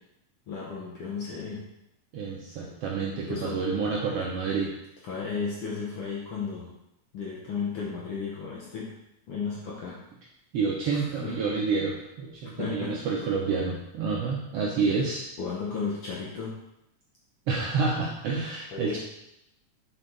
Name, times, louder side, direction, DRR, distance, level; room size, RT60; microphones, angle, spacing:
voice 1, 0.5-1.6 3.3-3.6 5.1-6.7 7.1-8.9 9.3-10.0 10.9-11.3 12.6-13.0 15.4-16.5 18.7-19.0, left 5 dB, 65° left, -4 dB, 1.4 m, -34 dB
voice 2, 2.1-4.7 10.5-15.2 17.5-19.0, right 4 dB, 75° right, -3 dB, 1.4 m, -28 dB
6.4 x 4.6 x 3.9 m, 0.85 s
omnidirectional pair, 3.5 m